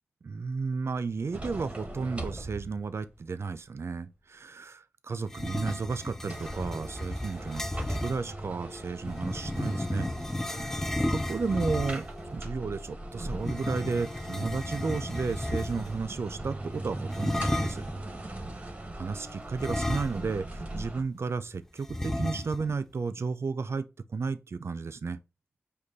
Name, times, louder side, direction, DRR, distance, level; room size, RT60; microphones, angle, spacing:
voice 1, 0.2-10.1 10.6-10.8 11.1-12.1 12.3-17.8 18.6-18.7 19.0-23.9 24.1-25.2, right 4 dB, 65° right, 0.4 m, -33 dB
sound 1, 1.3-3.1 3.5-3.6 6.2-21.0, right 1 dB, 25° right, 1.0 m, -40 dB
sound 2, 5.3-8.2 9.0-12.2 13.4-16.0 17.1-17.9 19.6-20.5 20.8-20.9 21.9-22.8, left 1 dB, 10° left, 0.3 m, -33 dB
5.2 x 2.2 x 3.9 m
wide cardioid pair, 65°, 5 cm